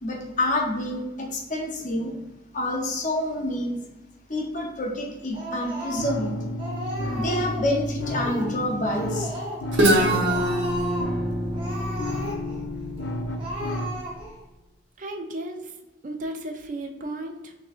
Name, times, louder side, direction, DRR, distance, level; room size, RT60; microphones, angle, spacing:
voice 1, 0.0-2.1 2.5-3.8 4.3-6.3 7.2-9.3, left 1 dB, 45° left, 2 dB, 0.7 m, -28 dB
Speech, 5.3-6.3 6.6-7.7 8.1-8.6 8.8-9.7 9.9-11.1 11.5-12.6 13.0-13.1 13.4-14.4, equal, 30° right, 1.0 m, -34 dB
sound 1, 6.0-14.0, left 1 dB, 85° left, 0.5 m, -31 dB
Guitar, 9.7-13.5, right 1 dB, 85° right, 0.7 m, -25 dB
voice 2, 15.0-15.8 16.0-17.5, right 1 dB, 45° right, 5 dB, 0.4 m, -34 dB
6.1 x 2.7 x 2.4 m, 1.1 s
head